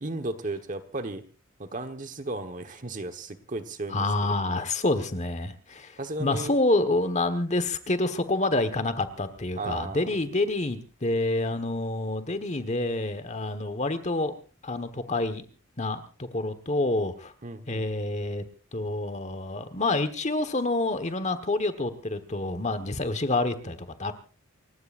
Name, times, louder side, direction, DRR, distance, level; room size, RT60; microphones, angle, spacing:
voice 1, 0.0-1.2 1.6-4.1 4.5-4.6 6.0-6.5 9.6-10.0 17.4-17.8, right 2 dB, 40° right, 8 dB, 1.3 m, -35 dB
voice 2, 3.9-14.3 14.6-15.4 15.8-17.3 17.7-18.4 18.7-24.1, left 2 dB, 35° left, 9 dB, 1.4 m, -28 dB
29.0 x 16.0 x 2.6 m, 0.36 s
head